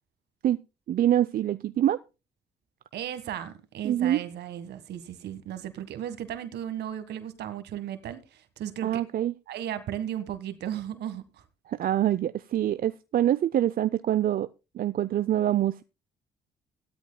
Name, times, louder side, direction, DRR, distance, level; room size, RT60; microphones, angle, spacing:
voice 1, 0.9-2.0 3.8-4.2 8.8-9.3 11.7-14.5 14.7-15.8, right 11 dB, 55° right, 0.5 m, -25 dB
voice 2, 2.9-9.0 9.5-11.4, right 10 dB, 75° right, 1.5 m, -35 dB
17.0 x 13.0 x 2.2 m
supercardioid pair, 55°, 17 cm